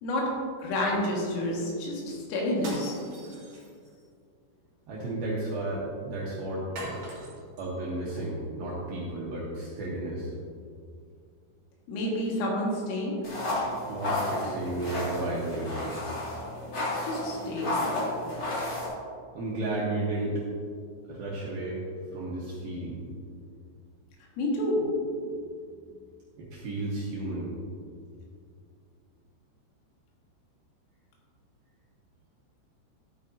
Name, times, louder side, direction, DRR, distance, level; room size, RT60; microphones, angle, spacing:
voice 1, 0.6-3.0 11.9-13.2 17.0-17.8 24.4-24.9, left 1 dB, 80° left, -3 dB, 4.4 m, -29 dB
sound 1, 2.5-4.0 6.8-7.7, right 2 dB, 40° right, 1.9 m, -42 dB
voice 2, 4.9-7.1 7.6-10.3 13.9-15.8 19.3-20.4 21.1-21.8 22.1-23.0 26.4-27.5, right 2 dB, 75° right, -5 dB, 2.3 m, -33 dB
sound 2, 13.2-18.9, left 2 dB, 40° left, 1.6 m, -32 dB
12.5 x 8.9 x 2.8 m, 2.2 s
omnidirectional pair, 5.9 m